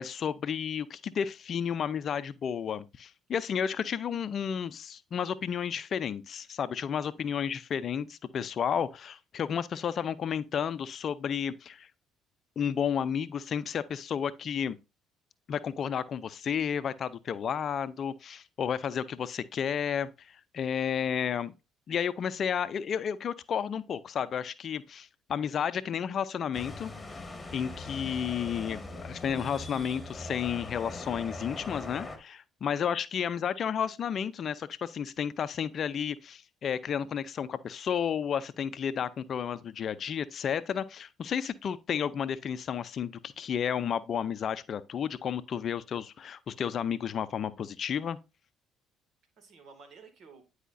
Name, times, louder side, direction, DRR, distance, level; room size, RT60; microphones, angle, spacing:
voice 1, 0.0-11.9 12.6-14.8 15.5-21.5 21.9-26.9 27.5-48.2, left 8 dB, 50° left, 0.5 m, -32 dB
sound 1, 26.5-32.2, left 2 dB, 20° left, 1.7 m, -41 dB
voice 2, 49.4-50.4, right 4 dB, 55° right, 2.1 m, -54 dB
10.0 x 4.8 x 2.6 m
hypercardioid pair, 55°, 0 cm